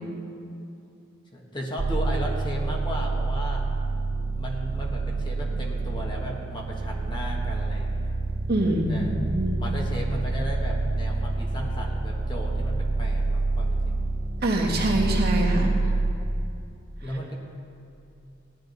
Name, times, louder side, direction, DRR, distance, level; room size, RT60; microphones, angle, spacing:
voice 1, 1.3-3.7 4.3-8.2 8.6-9.1 9.6-14.0 15.5-15.6 17.0-17.3, equal, 25° left, -1 dB, 1.4 m, -35 dB
sound 1, 1.8-16.1, right 3 dB, 35° right, 0.5 m, -27 dB
voice 2, 8.5-9.6 14.4-15.7, right 1 dB, 50° right, -2 dB, 1.8 m, -24 dB
17.0 x 11.0 x 4.1 m, 2.6 s
head